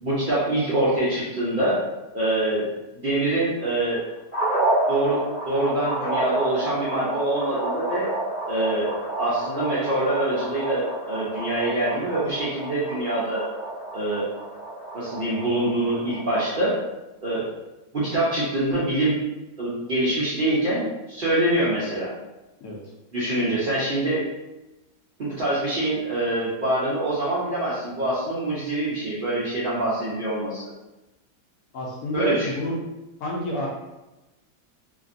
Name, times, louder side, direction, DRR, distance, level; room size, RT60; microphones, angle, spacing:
voice 1, 0.0-1.8 2.1-2.7 2.9-4.1 4.9-8.1 8.5-13.5 13.9-14.3 14.9-16.8 17.2-17.4 17.9-19.2 19.6-22.1 23.1-24.2 25.2-30.7 32.1-32.5, right 1 dB, 60° right, -10 dB, 0.5 m, -25 dB
sound 1, 4.3-16.6, right 2 dB, 40° left, 1.0 m, -30 dB
voice 2, 31.7-32.8 33.2-33.7, left 1 dB, 70° left, -3 dB, 1.0 m, -28 dB
2.9 x 2.5 x 2.5 m, 1.0 s
omnidirectional pair, 1.8 m